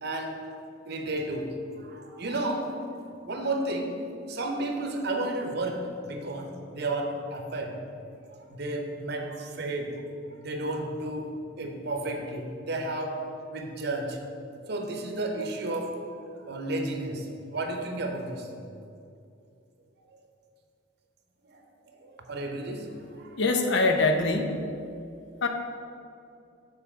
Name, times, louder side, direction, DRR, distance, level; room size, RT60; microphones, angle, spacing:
voice 1, 0.0-0.4 0.9-2.9 3.3-4.0 4.3-7.8 8.5-10.0 10.4-11.3 11.6-13.3 13.5-14.2 14.7-16.0 16.5-18.5 20.1-20.2 21.5-23.4, right 2 dB, 55° right, 3 dB, 0.8 m, -32 dB
voice 2, 23.4-24.6 25.4-25.5, left 3 dB, 60° left, 5 dB, 0.7 m, -23 dB
6.7 x 4.0 x 6.1 m, 2.5 s
head